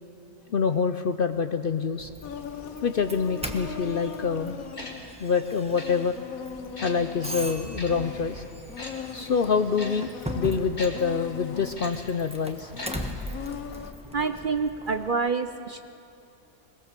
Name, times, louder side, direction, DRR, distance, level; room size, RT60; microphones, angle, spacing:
voice 1, 0.5-2.1 2.8-4.6 5.2-6.1 6.8-8.5 9.1-10.1 10.3-12.7, left 5 dB, 55° left, 9 dB, 0.7 m, -26 dB
Doorbell, 2.0-15.1, right 1 dB, 5° right, 1.1 m, -40 dB
Insect, 2.2-13.9, left 7 dB, 85° left, 1.5 m, -40 dB
Tick-tock, 4.8-4.9 5.8-5.9 6.8-6.9 7.8-7.9 8.8-8.9 9.8-9.9 10.8-10.9 11.8-11.9 12.8-12.9 13.2-13.3, left 2 dB, 30° left, 2.6 m, -38 dB
voice 2, 14.1-15.8, right 4 dB, 50° right, 9 dB, 0.7 m, -27 dB
21.0 x 20.5 x 7.4 m, 2.6 s
omnidirectional pair, 1.4 m